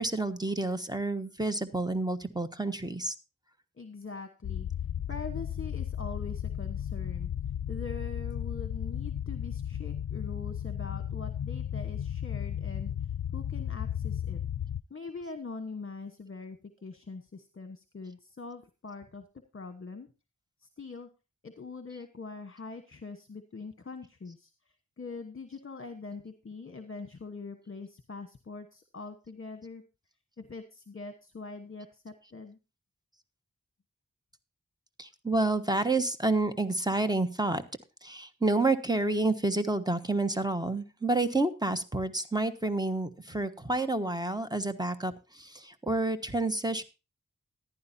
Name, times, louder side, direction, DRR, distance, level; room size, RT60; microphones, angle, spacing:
voice 1, 0.0-3.1 35.0-37.6 38.0-46.8, right 2 dB, 15° right, 8 dB, 1.3 m, -29 dB
voice 2, 3.8-4.7 5.1-7.3 7.7-12.9 13.3-14.4 14.9-19.2 19.5-20.1 20.6-21.1 21.4-24.5 25.0-29.8 30.4-32.6, left 4 dB, 40° left, 9 dB, 1.2 m, -43 dB
sound 1, 4.4-14.8, left 9 dB, 85° left, 0.5 m, -34 dB
14.5 x 11.0 x 2.7 m, 0.28 s
wide cardioid pair, 60°, 31 cm